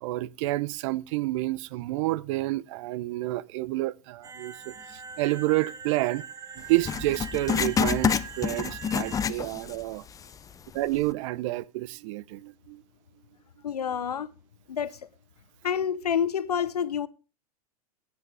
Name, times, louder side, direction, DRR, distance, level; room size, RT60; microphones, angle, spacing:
voice 1, 0.0-4.7 5.2-6.2 6.6-10.0 10.7-12.8, right 18 dB, 55° right, 0.6 m, -29 dB
sound 1, 4.2-9.3, right 5 dB, 20° right, 1.3 m, -42 dB
Writing, 6.8-9.8 10.1-10.2 10.9-11.0, left 7 dB, 20° left, 0.5 m, -27 dB
voice 2, 13.6-14.3 14.7-15.1 15.6-17.1, left 8 dB, 85° left, 0.8 m, -28 dB
17.5 x 9.7 x 3.4 m
hypercardioid pair, 100°, 19 cm